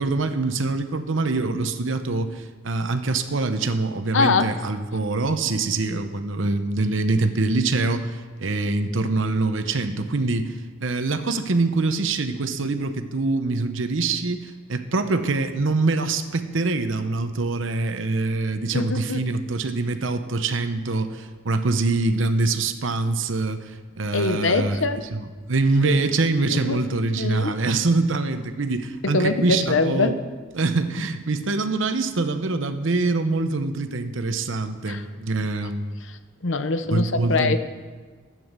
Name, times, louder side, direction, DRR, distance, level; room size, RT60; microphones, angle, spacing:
voice 1, 0.0-10.5 10.8-30.2 30.5-36.0 36.9-37.5, right 3 dB, 70° right, 9 dB, 0.9 m, -24 dB
voice 2, 4.1-4.5 18.7-19.2 24.1-25.0 25.8-25.9 26.5-26.8 27.2-27.5 29.0-30.1 34.9-35.0 36.4-37.6, left 3 dB, 65° left, 10 dB, 0.8 m, -23 dB
11.0 x 9.3 x 6.7 m, 1.5 s
head